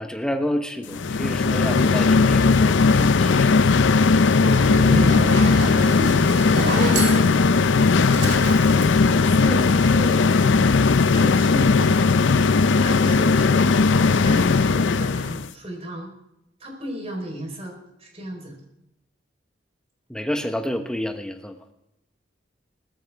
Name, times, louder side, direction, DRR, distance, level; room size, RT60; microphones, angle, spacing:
voice 1, 0.0-3.5 20.1-21.6, equal, 5° left, 5 dB, 1.2 m, -29 dB
sound 1, 0.9-15.5, left 4 dB, 80° left, 0.6 m, -18 dB
voice 2, 4.1-5.4 5.7-7.4 9.0-10.5 11.1-12.1 12.8-16.1 16.6-18.6, equal, 30° right, 2 dB, 4.5 m, -34 dB
Zipper (clothing), 4.5-9.8, right 1 dB, 65° right, 3.2 m, -29 dB
19.5 x 13.5 x 3.6 m, 0.87 s
head